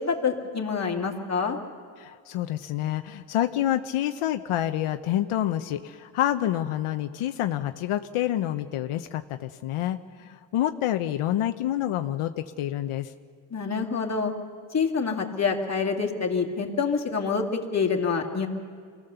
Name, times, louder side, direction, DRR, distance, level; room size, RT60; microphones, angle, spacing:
voice 1, 0.0-1.6 13.5-14.3 14.7-18.5, left 5 dB, 30° left, 1 dB, 2.2 m, -26 dB
voice 2, 2.0-13.1, left 12 dB, 85° left, 8 dB, 0.8 m, -28 dB
24.5 x 16.5 x 6.8 m, 2.2 s
cardioid pair, 105°, 49 cm